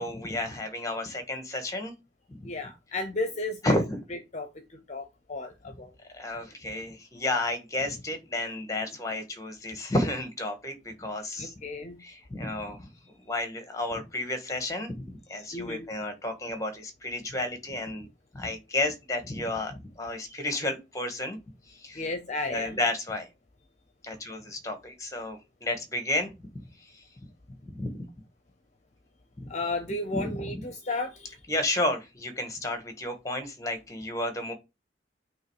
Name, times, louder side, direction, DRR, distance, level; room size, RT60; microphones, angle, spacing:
voice 1, 0.0-1.9 2.3-2.4 3.6-4.0 6.1-11.5 12.0-12.9 13.3-18.1 18.3-21.4 21.7-22.1 22.4-23.3 24.0-27.0 27.5-27.9 30.2-30.6 31.5-34.5, left 1 dB, 20° left, 1.6 m, -32 dB
voice 2, 2.4-3.8 4.3-5.9 11.4-12.0 15.5-15.9 21.9-22.8 29.5-31.4, left 2 dB, 40° left, 0.8 m, -34 dB
8.7 x 3.1 x 4.9 m
head